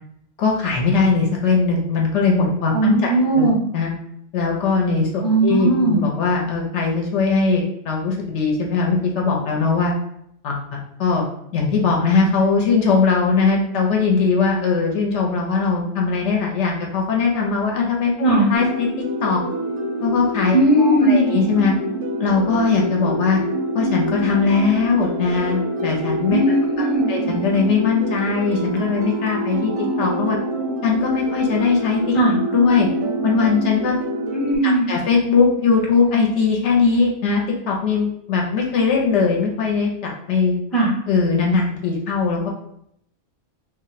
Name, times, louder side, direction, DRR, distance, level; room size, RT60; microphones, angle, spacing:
voice 1, 0.4-3.9 4.3-9.9 10.4-11.3 11.5-19.4 20.0-21.7 22.2-23.4 23.7-26.4 27.1-30.4 30.8-32.1 32.5-32.9 33.2-34.0 34.6-40.6 41.1-42.5, left 4 dB, 70° left, -1 dB, 0.8 m, -20 dB
voice 2, 2.7-3.6 5.2-6.0 18.2-18.5 20.5-21.2 26.3-27.1 32.1-32.4 34.3-34.9 40.7-40.9, right 2 dB, ahead, -4 dB, 0.5 m, -17 dB
sound 1, 18.5-34.6, right 1 dB, 65° right, 0.7 m, -26 dB
2.4 x 2.1 x 3.9 m, 0.74 s
omnidirectional pair, 1.3 m